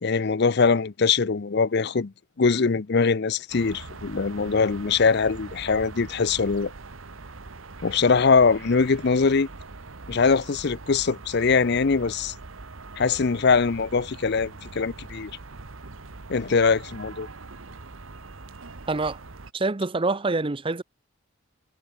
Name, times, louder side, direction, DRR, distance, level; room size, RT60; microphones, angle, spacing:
voice 1, 0.0-6.7 7.8-9.5 10.1-12.3 13.0-15.3 16.3-17.3, left 5 dB, 55° left, 0.6 m, -22 dB
sound 1, 3.5-19.5, right 3 dB, 85° right, 1.4 m, -42 dB
voice 2, 18.9-19.2 19.5-20.8, right 3 dB, 25° right, 0.7 m, -26 dB
head